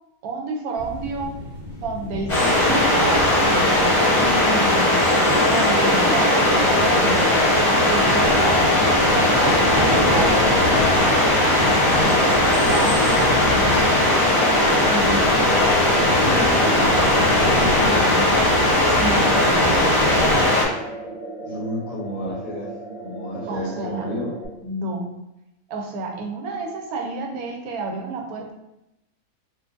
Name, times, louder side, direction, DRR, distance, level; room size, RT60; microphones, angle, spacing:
voice 1, 0.2-1.4 1.8-3.3 4.2-4.8 5.3-8.6 9.1-11.3 12.0-13.0 13.3-13.7 14.8-15.5 16.3-18.3 18.8-20.1 23.5-24.1 24.6-25.1 25.7-28.5, right 2 dB, 85° right, 2 dB, 1.1 m, -30 dB
sound 1, 0.8-20.4, left 1 dB, 50° right, 1.5 m, -29 dB
sound 2, 2.3-20.6, left 1 dB, 25° left, 0.9 m, -18 dB
sound 3, 4.5-24.5, right 3 dB, 30° right, 1.1 m, -36 dB
voice 2, 21.4-22.7 23.0-24.3, equal, 55° left, -7 dB, 0.9 m, -31 dB
3.8 x 2.5 x 2.5 m, 0.88 s
omnidirectional pair, 1.5 m